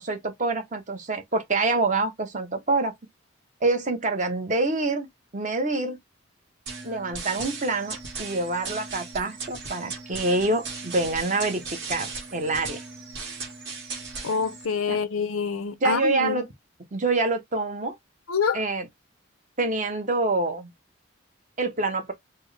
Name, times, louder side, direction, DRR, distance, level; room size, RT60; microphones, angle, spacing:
voice 1, 0.0-2.9 3.6-5.1 5.3-6.0 6.8-11.6 11.9-12.8 14.9-15.0 15.8-16.5 16.9-18.0 18.5-18.9 19.6-20.7 21.6-22.1, right 3 dB, 35° right, 0.8 m, -26 dB
sound 1, 6.7-14.7, right 4 dB, 60° right, 1.5 m, -37 dB
voice 2, 14.2-16.4 18.3-18.6, left 5 dB, 90° left, 0.6 m, -26 dB
4.3 x 2.0 x 3.2 m
head